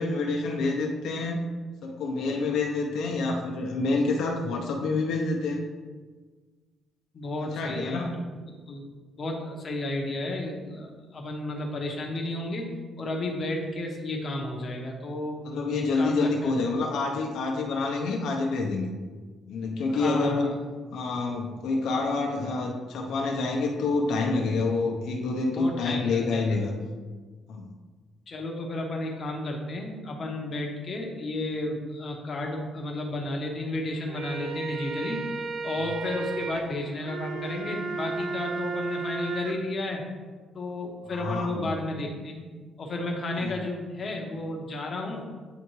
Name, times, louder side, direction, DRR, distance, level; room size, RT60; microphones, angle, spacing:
voice 1, 0.0-1.4 1.8-5.6 7.5-8.1 15.4-18.9 19.5-20.5 20.9-26.7 27.5-27.6 41.1-41.8 43.4-43.5, left 3 dB, 70° left, 1 dB, 0.8 m, -27 dB
voice 2, 7.1-8.3 8.7-8.8 9.2-12.7 13.0-16.5 19.9-20.6 25.6-26.4 28.3-35.2 35.6-40.0 40.5-42.5 42.8-45.3, left 2 dB, 30° left, 0 dB, 0.8 m, -32 dB
sound 1, 33.9-39.5, right 4 dB, 55° right, 0.5 m, -34 dB
9.0 x 3.5 x 3.1 m, 1.4 s
cardioid pair, 175°, 0 cm